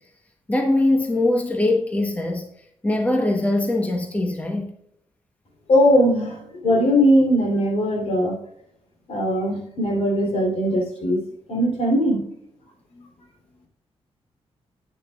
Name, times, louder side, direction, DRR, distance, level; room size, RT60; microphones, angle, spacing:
voice 1, 0.5-2.4 2.8-4.7 13.0-13.1, left 2 dB, 15° left, 1.1 m, -22 dB
voice 2, 5.7-8.4 9.1-11.2 11.5-12.2, equal, 70° left, 3.4 m, -20 dB
10.5 x 9.1 x 2.4 m
wide cardioid pair, 155°, 11 cm